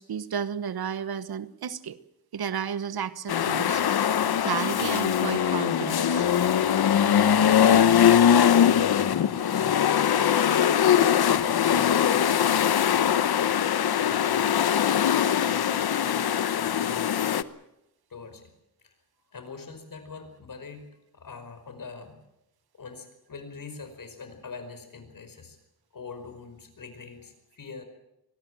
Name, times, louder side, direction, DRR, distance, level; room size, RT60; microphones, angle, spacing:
voice 1, 0.0-2.0 2.3-3.8 4.4-6.3, right 8 dB, 85° right, 15 dB, 1.2 m, -32 dB
sound 1, 3.3-17.4, left 9 dB, 80° left, 1.0 m, -22 dB
voice 2, 9.5-10.4 11.6-13.6 13.9-17.3 18.1-18.5 18.8-18.9 19.3-20.9 21.1-22.2 22.7-25.6 25.9-27.8, left 4 dB, 60° left, 8 dB, 5.2 m, -43 dB
24.5 x 18.5 x 7.5 m, 0.87 s
wide cardioid pair, 110°, 37 cm